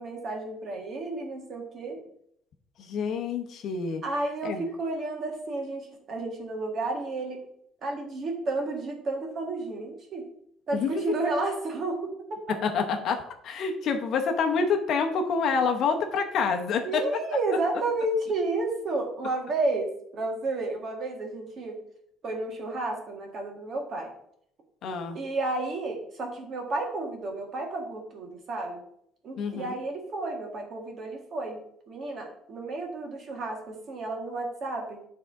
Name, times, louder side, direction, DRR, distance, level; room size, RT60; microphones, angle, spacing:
voice 1, 0.0-2.0 4.0-7.4 7.8-10.3 10.7-12.6 16.8-21.8 22.2-24.1 25.1-28.8 29.2-31.6 31.9-35.0, right 2 dB, 35° right, 2 dB, 1.6 m, -31 dB
voice 2, 2.8-4.0 4.4-4.6 10.7-11.2 12.5-17.2 24.8-25.2 29.4-29.7, left 5 dB, 50° left, 5 dB, 0.9 m, -27 dB
9.8 x 3.7 x 4.7 m, 0.70 s
cardioid pair, 160°, 0 cm